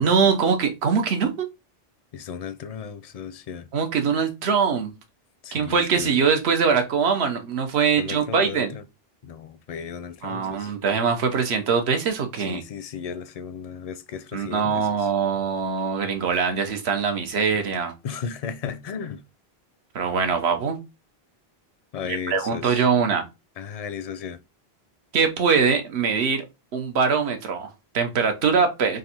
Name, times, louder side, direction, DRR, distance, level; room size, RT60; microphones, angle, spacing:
voice 1, 0.0-1.5 3.7-4.9 5.5-8.7 10.2-12.6 14.3-17.9 19.9-20.8 22.1-23.2 25.1-26.5 26.7-29.0, right 6 dB, 80° right, 1.1 m, -22 dB
voice 2, 2.1-3.7 5.4-6.2 8.0-8.8 9.2-10.7 12.5-15.1 18.0-19.2 21.9-22.8 23.6-24.4, left 7 dB, 55° left, 0.4 m, -35 dB
3.8 x 2.6 x 4.1 m
omnidirectional pair, 1.1 m